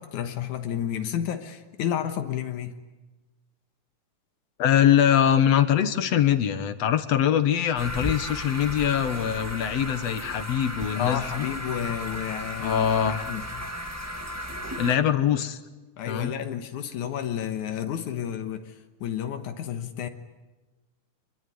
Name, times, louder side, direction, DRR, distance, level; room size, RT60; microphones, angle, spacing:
voice 1, 0.0-2.8 11.0-13.7 16.0-20.1, left 9 dB, 80° left, 7 dB, 2.6 m, -31 dB
voice 2, 4.6-11.5 12.6-13.2 14.8-15.6 16.1-16.3, left 9 dB, 60° left, 11 dB, 2.2 m, -23 dB
sound 1, 7.8-15.0, equal, 10° right, 1.1 m, -35 dB
26.0 x 21.5 x 9.6 m, 1.2 s
omnidirectional pair, 3.5 m